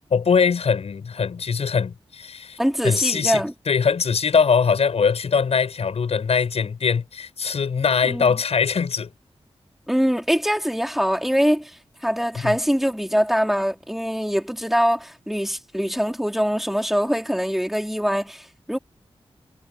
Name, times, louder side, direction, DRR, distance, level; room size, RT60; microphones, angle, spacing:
voice 1, 0.1-2.6 2.8-9.1 12.4-12.6, left 6 dB, 85° left, 6.8 m, -22 dB
voice 2, 2.6-3.5 8.1-8.3 9.9-11.7 12.0-18.8, equal, ahead, 4.6 m, -23 dB
wide cardioid pair, 90°, 10 cm